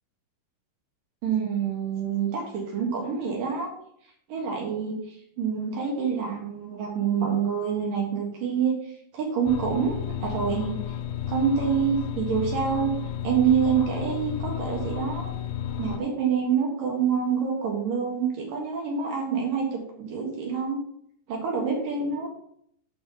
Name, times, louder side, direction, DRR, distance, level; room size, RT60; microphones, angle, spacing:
voice 1, 1.2-3.7 4.3-5.0 5.4-8.7 9.1-10.8 11.3-12.9 13.2-15.3 15.8-20.8 21.3-22.3, right 7 dB, 65° right, -1 dB, 2.3 m, -26 dB
sound 1, 9.5-16.0, left 10 dB, 90° left, 2.5 m, -32 dB
7.8 x 6.2 x 5.6 m, 0.68 s
omnidirectional pair, 5.9 m